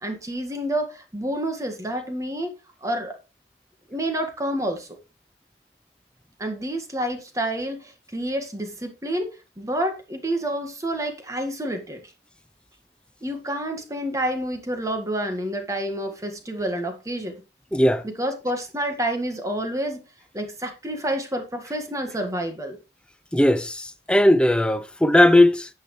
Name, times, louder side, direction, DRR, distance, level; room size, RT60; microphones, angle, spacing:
voice 1, 0.0-2.5 2.8-3.2 3.9-4.9 6.4-9.3 9.6-12.0 13.2-17.4 18.0-20.0 20.3-22.8, right 1 dB, 20° right, 1.8 m, -28 dB
voice 2, 17.7-18.0 23.3-25.7, left 1 dB, 5° left, 0.7 m, -18 dB
10.5 x 8.6 x 3.3 m
head